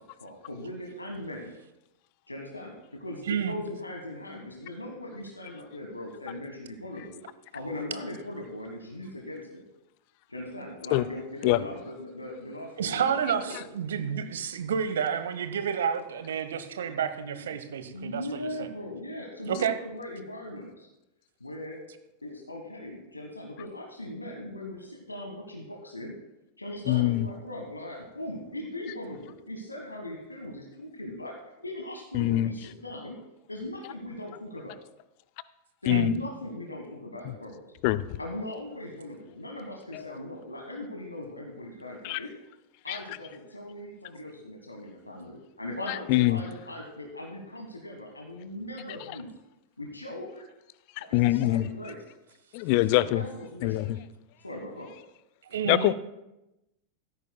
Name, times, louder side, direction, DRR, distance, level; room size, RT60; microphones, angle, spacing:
voice 1, 0.2-1.5 2.3-7.2 7.5-9.6 10.3-13.6 17.9-20.9 21.4-21.8 22.2-26.1 26.6-31.3 31.6-33.2 33.5-34.8 35.8-37.7 38.2-42.3 42.8-49.3 49.8-50.4 51.1-52.0 52.9-53.9 54.4-54.9, left 1 dB, 85° left, 1 dB, 1.4 m, -39 dB
voice 2, 12.8-18.7 19.4-19.8 35.9-36.1 55.5-55.9, right 7 dB, 65° right, 10 dB, 1.1 m, -30 dB
voice 3, 26.9-27.3 32.1-32.5 35.9-36.1 37.2-37.4 37.8-38.2 39.9-40.1 42.0-42.2 42.9-43.2 45.9-46.4 51.0-51.7 52.5-53.2 53.6-54.0 55.7-55.9, left 17 dB, 45° left, 17 dB, 0.5 m, -24 dB
16.0 x 13.5 x 2.3 m, 0.94 s
figure-of-eight pair, 90°, 0 cm